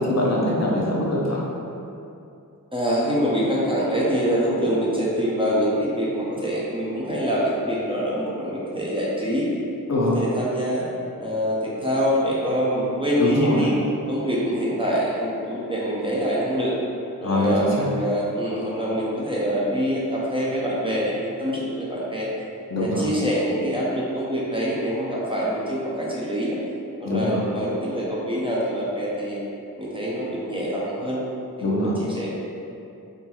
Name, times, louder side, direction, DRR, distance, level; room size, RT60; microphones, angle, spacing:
voice 1, 0.0-1.4 9.9-10.2 13.2-13.7 17.2-17.9 22.7-23.0 27.0-27.4 31.6-31.9, left 1 dB, 50° left, -4 dB, 0.6 m, -23 dB
voice 2, 2.7-9.5 9.9-10.8 11.2-13.7 14.1-16.8 17.2-22.3 22.8-26.6 27.0-29.4 29.8-31.2 31.6-32.3, equal, 15° right, -6 dB, 0.6 m, -25 dB
3.7 x 2.5 x 2.8 m, 2.8 s
wide cardioid pair, 75°, 34 cm